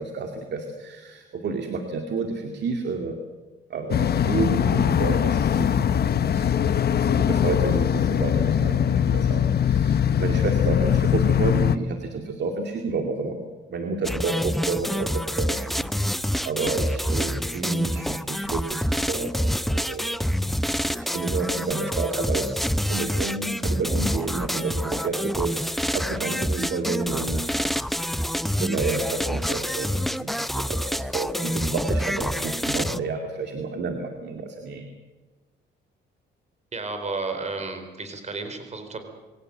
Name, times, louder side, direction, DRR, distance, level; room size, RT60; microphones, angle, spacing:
voice 1, 0.0-3.2 3.7-6.6 7.1-13.4 13.7-16.2 16.4-20.3 20.9-22.6 22.9-27.7 28.4-34.8, right 4 dB, 60° right, 4 dB, 2.4 m, -30 dB
sound 1, 3.9-11.8, left 8 dB, 55° left, 1.1 m, -21 dB
sound 2, 14.0-33.0, equal, ahead, 0.6 m, -27 dB
voice 2, 36.7-39.0, right 3 dB, 35° right, 6 dB, 4.3 m, -32 dB
23.0 x 18.0 x 7.9 m, 1.3 s
cardioid pair, 90°, 20 cm